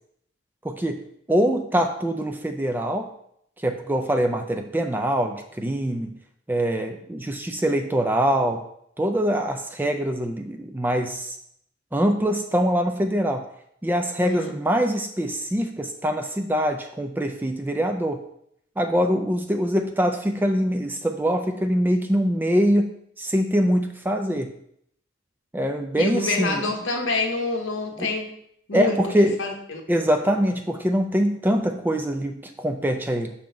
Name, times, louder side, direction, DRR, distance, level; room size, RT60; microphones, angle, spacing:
voice 1, 0.6-3.1 3.6-6.2 6.5-8.6 9.0-11.4 11.9-13.5 13.8-18.2 18.8-24.5 25.5-26.7 28.0-28.1 28.7-29.4 29.9-33.3, equal, 10° right, 6 dB, 0.3 m, -24 dB
voice 2, 14.2-14.6 25.9-28.3 28.7-29.8, left 3 dB, 70° left, 3 dB, 1.0 m, -27 dB
5.8 x 3.8 x 5.1 m, 0.72 s
head